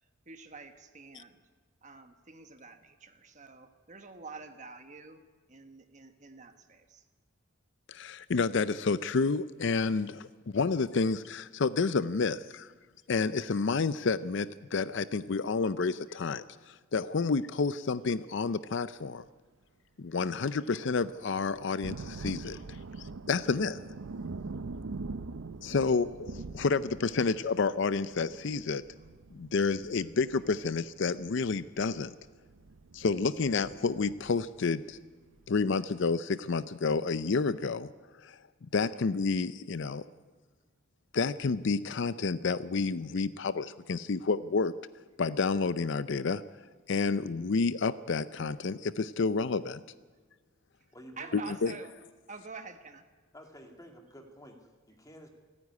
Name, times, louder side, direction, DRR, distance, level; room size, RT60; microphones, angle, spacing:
voice 1, 0.3-1.4 1.8-5.2 5.5-7.0 22.9-23.0 51.2-51.9 52.3-53.0, right 4 dB, 35° right, 8 dB, 1.2 m, -47 dB
voice 2, 7.9-12.7 13.1-19.2 20.0-23.8 25.6-28.8 29.3-32.1 32.9-35.0 35.5-37.9 38.2-38.4 38.7-40.0 41.1-44.7 45.2-46.4 46.9-49.8 51.3-51.7, left 4 dB, 60° left, 15 dB, 0.5 m, -30 dB
sound 1, 21.5-35.0 35.4-35.5, right 3 dB, 80° right, 0.6 m, -44 dB
voice 3, 50.9-51.4 53.3-55.3, equal, 15° left, 3 dB, 2.3 m, -51 dB
28.0 x 9.8 x 9.5 m, 1.4 s
head